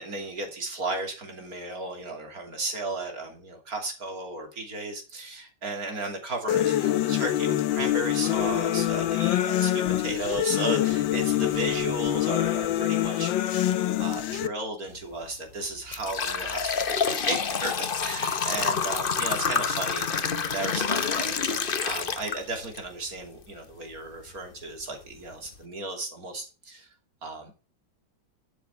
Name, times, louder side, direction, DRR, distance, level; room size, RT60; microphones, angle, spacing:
voice 1, 0.0-26.9 27.2-27.5, right 2 dB, 50° right, 3 dB, 3.3 m, -35 dB
sound 1, 6.5-14.5, left 13 dB, 85° left, 1.5 m, -25 dB
sound 2, 15.0-15.2 15.6-22.8 23.2-23.3 24.2-24.3 24.8-24.9 25.3-25.6, left 6 dB, 45° left, 0.7 m, -28 dB
12.5 x 7.0 x 4.5 m, 0.34 s
omnidirectional pair, 2.1 m